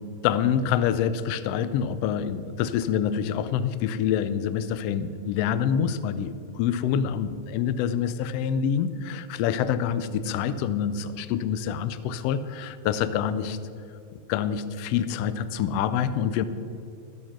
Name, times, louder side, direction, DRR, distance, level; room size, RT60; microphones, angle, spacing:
voice 1, 0.2-13.6 14.3-16.4, left 8 dB, 80° left, 13 dB, 1.5 m, -26 dB
14.0 x 6.4 x 5.9 m, 2.6 s
omnidirectional pair, 3.3 m